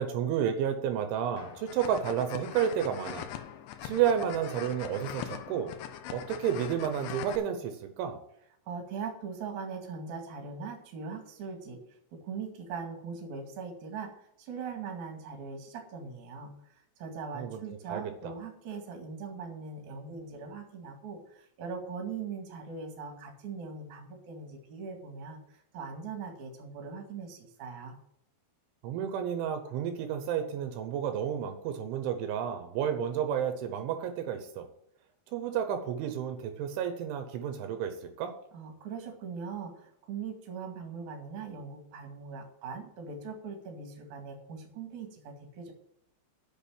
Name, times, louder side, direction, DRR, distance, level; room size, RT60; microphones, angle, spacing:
voice 1, 0.0-3.3 3.8-5.7 6.1-8.2 17.3-18.0 28.8-34.7 35.3-38.3, right 8 dB, 80° right, 7 dB, 3.3 m, -31 dB
sound 1, 1.4-7.4, left 10 dB, 80° left, 3.2 m, -42 dB
voice 2, 8.7-11.8 12.1-16.5 17.0-28.0 38.5-45.7, right 5 dB, 50° right, 3 dB, 2.8 m, -41 dB
8.5 x 6.7 x 8.5 m, 0.75 s
omnidirectional pair, 5.6 m